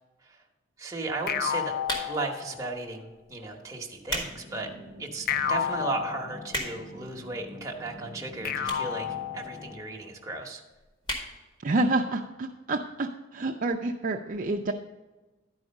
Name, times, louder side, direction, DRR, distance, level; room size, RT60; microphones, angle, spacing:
voice 1, 0.8-1.7 2.0-4.7 5.0-10.6, right 3 dB, 15° right, 0 dB, 0.9 m, -35 dB
sound 1, 1.3-2.9 5.3-6.9 8.4-10.0, left 8 dB, 45° left, 0.4 m, -31 dB
sound 2, 1.8-2.4 3.1-3.3 3.8-4.3 4.8-4.9 5.5-5.6 5.8-5.9 6.1-7.0 7.8-7.9 8.6-9.0 9.3-9.4 9.6-9.7 9.9-10.0 10.3-10.5 11.0-11.3 11.7-11.8 12.0-12.1, equal, 20° left, 1.5 m, -33 dB
sound 3, 4.1-9.8, left 1 dB, 60° left, 1.7 m, -47 dB
voice 2, 11.6-14.7, right 2 dB, 40° right, 2 dB, 0.4 m, -28 dB
11.5 x 4.8 x 5.2 m, 1.2 s
head